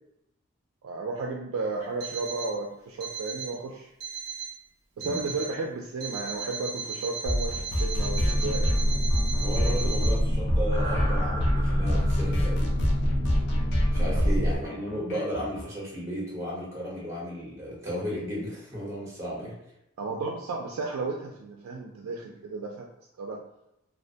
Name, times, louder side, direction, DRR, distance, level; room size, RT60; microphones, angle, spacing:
voice 1, 0.8-3.9 5.0-8.8 14.1-14.2 20.0-22.9 23.2-23.4, right 3 dB, 80° right, 0 dB, 0.3 m, -33 dB
Alarm, 2.0-2.6 3.0-3.6 4.0-4.6 5.0-5.6 6.0-10.1, right 6 dB, 45° right, 0.6 m, -36 dB
voice 2, 5.0-5.3 9.4-12.7 13.9-19.6, equal, 15° right, -6 dB, 0.9 m, -34 dB
sound 1, 7.3-15.6, equal, 50° left, 0.4 m, -29 dB
sound 2, 7.9-14.6, equal, 85° left, 1.3 m, -26 dB
2.4 x 2.1 x 2.7 m, 0.85 s
head